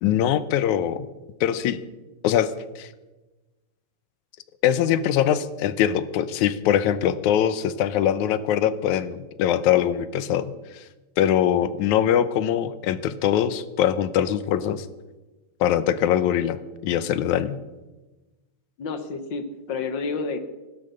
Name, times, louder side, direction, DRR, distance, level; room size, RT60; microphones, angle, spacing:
voice 1, 0.0-1.1 1.4-1.8 2.2-2.9 4.6-10.5 11.2-14.9 15.6-16.6 16.8-17.6, left 10 dB, 85° left, 14 dB, 2.2 m, -22 dB
voice 2, 18.8-20.4, left 4 dB, 55° left, 9 dB, 1.4 m, -30 dB
16.0 x 12.0 x 6.8 m, 1.1 s
omnidirectional pair, 3.4 m